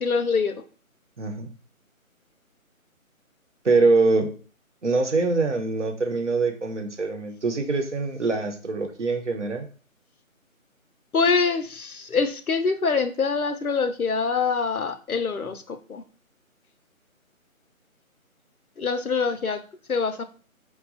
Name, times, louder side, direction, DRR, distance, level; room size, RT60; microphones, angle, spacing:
voice 1, 0.0-0.6 11.1-16.0 18.8-19.6 19.9-20.2, left 5 dB, 90° left, 8 dB, 0.7 m, -24 dB
voice 2, 1.2-1.5 3.6-4.3 4.8-9.7, right 3 dB, 60° right, 5 dB, 0.8 m, -23 dB
4.8 x 2.3 x 3.9 m, 0.39 s
figure-of-eight pair, 155°, 42 cm